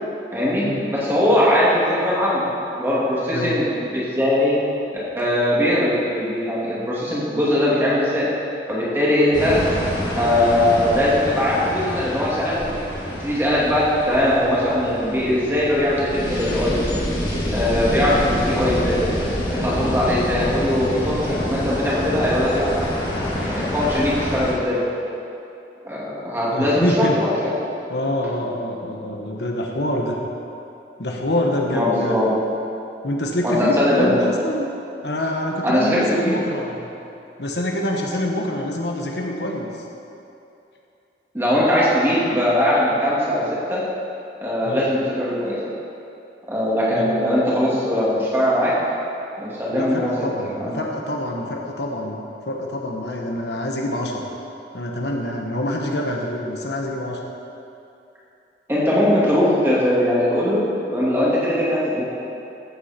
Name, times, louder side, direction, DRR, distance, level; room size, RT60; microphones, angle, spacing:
voice 1, 0.3-2.4 2.7-4.6 5.1-8.3 8.7-9.6 10.2-12.7 13.2-16.8 17.5-19.0 19.5-22.7 23.4-24.8 25.8-27.5 31.7-32.3 33.4-34.3 35.6-36.5 41.3-43.8 44.4-45.6 46.5-48.7 49.4-50.1 50.6-50.8 58.7-62.1, left 1 dB, 15° right, -8 dB, 2.5 m, -20 dB
sound 1, 9.3-24.5, equal, 25° left, 1.9 m, -27 dB
voice 2, 26.5-27.2 27.9-30.2 31.0-32.2 33.0-34.7 35.0-36.9 37.4-39.7 44.6-44.9 46.9-47.2 49.7-54.2 54.7-57.2, left 1 dB, 75° left, 0 dB, 1.3 m, -26 dB
14.0 x 8.3 x 4.4 m, 2.8 s
head